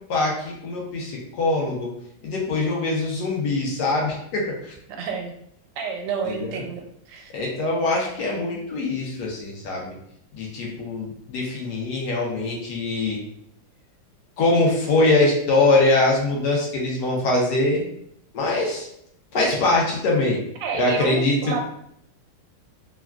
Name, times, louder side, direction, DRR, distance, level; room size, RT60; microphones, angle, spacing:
voice 1, 0.1-1.9 2.2-4.7 6.3-6.6 7.3-9.9 10.3-13.2 14.4-17.8 18.3-18.9 19.3-20.4 20.7-21.3, left 2 dB, 70° left, -2 dB, 1.2 m, -23 dB
voice 2, 4.9-5.3 5.8-7.3 20.6-21.6, right 5 dB, 85° right, 3 dB, 1.3 m, -29 dB
3.4 x 2.2 x 2.3 m, 0.71 s
omnidirectional pair, 2.0 m